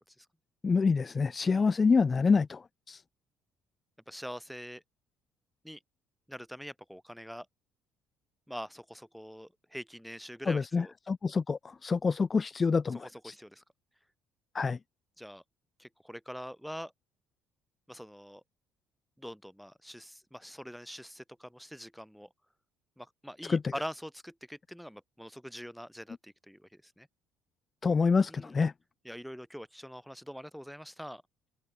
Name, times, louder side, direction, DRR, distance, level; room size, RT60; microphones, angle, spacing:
voice 1, 0.6-3.0 10.5-13.3 14.5-14.8 23.5-23.6 27.8-28.7, left 4 dB, 25° left, 0.4 m, -27 dB
voice 2, 4.1-4.8 5.6-5.8 6.3-7.5 8.5-10.9 12.9-13.6 15.2-15.4 15.8-16.9 17.9-18.4 19.2-22.3 23.0-27.1 28.3-28.6 29.0-31.2, equal, ahead, 3.7 m, -44 dB
cardioid pair, 120°, 0 cm